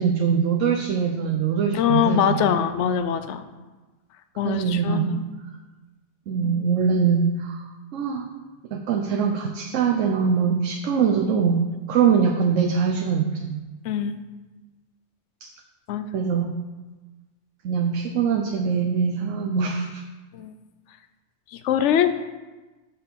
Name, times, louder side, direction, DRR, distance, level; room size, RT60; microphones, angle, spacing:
voice 1, 0.0-2.5 4.4-5.2 6.3-7.6 7.9-8.3 8.7-13.6 15.4-15.5 16.1-16.5 17.6-20.0, right 6 dB, 80° right, 4 dB, 1.0 m, -23 dB
voice 2, 1.7-3.4 4.4-5.2 6.4-6.6 13.8-14.2 15.9-16.1 20.3-20.5 21.5-22.1, left 9 dB, 70° left, 10 dB, 0.9 m, -23 dB
6.7 x 5.8 x 6.9 m, 1.2 s
omnidirectional pair, 1.3 m